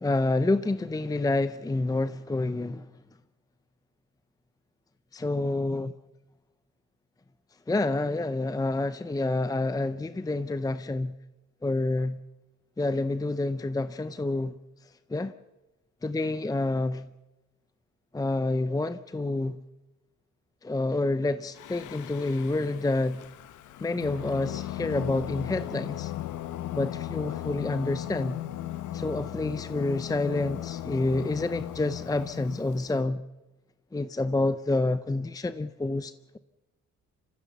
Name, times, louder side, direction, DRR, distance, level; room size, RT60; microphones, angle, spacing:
voice 1, 0.0-2.9 5.1-5.9 7.7-11.1 11.6-12.2 12.8-14.6 15.1-15.3 16.0-17.1 18.1-19.6 20.6-23.2 23.8-26.1 26.7-28.4 28.9-33.2 33.9-36.4, left 2 dB, 10° left, 0.6 m, -28 dB
Singing, 21.6-32.9, left 13 dB, 80° left, 1.0 m, -37 dB
27.5 x 15.0 x 7.0 m
cardioid pair, 90°, 30 cm